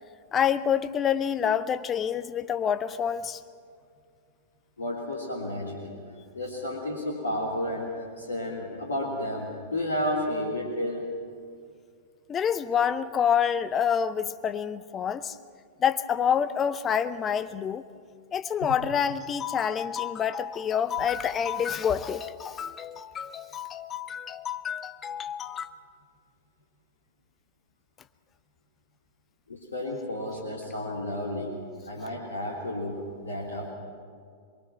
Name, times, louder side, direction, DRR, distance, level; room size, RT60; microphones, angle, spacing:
voice 1, 0.3-3.4 12.3-15.4 15.8-17.8 18.3-25.7, left 8 dB, 25° left, 13 dB, 0.8 m, -27 dB
voice 2, 4.8-5.9 6.3-11.1 18.6-18.7 29.5-33.7, left 1 dB, 75° left, -2 dB, 3.1 m, -32 dB
23.5 x 22.5 x 6.0 m, 2.2 s
figure-of-eight pair, 95°, 0 cm